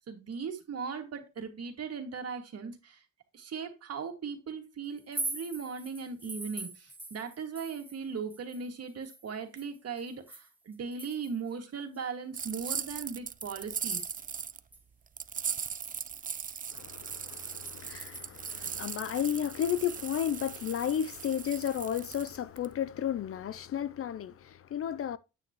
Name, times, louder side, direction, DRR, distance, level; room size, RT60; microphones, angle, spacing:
voice 1, 0.1-3.0 3.3-14.1, right 5 dB, 55° right, 2.2 m, -38 dB
sound 1, 5.0-8.0 8.3-11.5 11.9-12.0 12.5-14.5 14.7-14.8 15.2-18.6, right 2 dB, 5° right, 1.9 m, -44 dB
sound 2, 12.3-14.6 15.2-22.7, right 7 dB, 30° right, 0.5 m, -39 dB
voice 2, 16.7-25.2, left 9 dB, 50° left, 0.5 m, -33 dB
9.2 x 6.1 x 3.0 m
cardioid pair, 90°, 30 cm